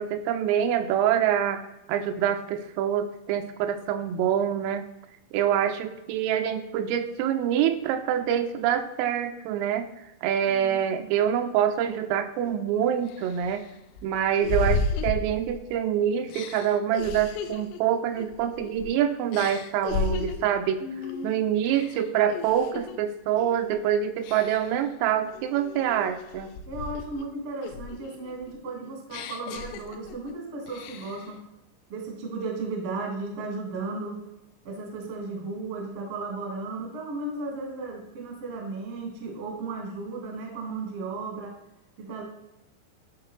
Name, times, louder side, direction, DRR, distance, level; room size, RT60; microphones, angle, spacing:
voice 1, 0.0-4.8 5.3-9.9 10.2-13.6 14.0-20.9 21.2-26.5, right 9 dB, 85° right, 8 dB, 3.1 m, -26 dB
voice 2, 10.5-11.1 20.8-21.3 26.6-31.4 31.9-34.2 34.6-41.6 42.0-42.2, right 3 dB, 65° right, 0 dB, 1.5 m, -35 dB
sound 1, 12.5-12.6 13.1-15.8 16.3-18.9 19.3-20.6 21.0-21.3 21.7-23.0 23.4-23.7 24.2-24.8 25.3-27.3 27.6-30.3 30.7-31.3, left 4 dB, 85° left, 3.2 m, -34 dB
10.5 x 5.7 x 3.2 m, 0.90 s
omnidirectional pair, 5.8 m